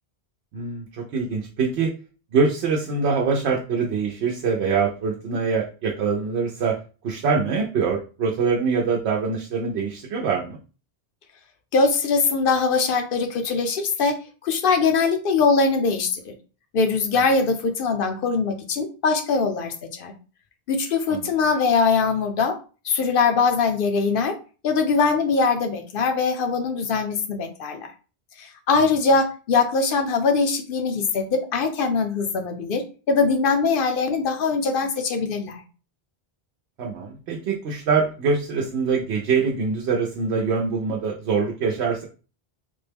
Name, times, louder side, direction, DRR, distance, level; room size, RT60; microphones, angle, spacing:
voice 1, 0.5-1.9 2.3-6.8 7.0-10.6 21.1-21.3 36.8-42.1, right 5 dB, 80° right, 0 dB, 0.9 m, -24 dB
voice 2, 11.7-14.2 14.4-16.3 16.7-20.1 20.7-22.5 22.8-24.3 24.6-27.9 28.4-35.6, left 4 dB, 65° left, 6 dB, 0.7 m, -22 dB
3.5 x 2.1 x 3.3 m, 0.36 s
omnidirectional pair, 1.1 m